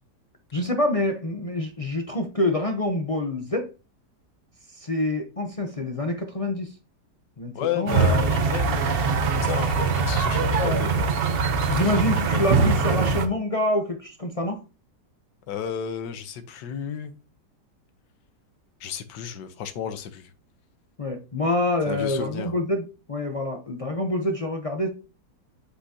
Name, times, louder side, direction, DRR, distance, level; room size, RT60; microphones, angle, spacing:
voice 1, 0.5-3.7 4.7-6.7 7.4-8.2 10.6-10.8 11.7-14.6 21.0-24.9, left 1 dB, 55° left, 0.4 m, -26 dB
voice 2, 7.5-9.0 9.3-11.0 11.9-12.4 15.5-17.1 18.8-20.3 21.9-22.5, left 8 dB, 80° left, 1.5 m, -33 dB
sound 1, 7.9-13.3, right 4 dB, 55° right, 0.7 m, -22 dB
8.2 x 5.8 x 2.8 m
omnidirectional pair, 1.9 m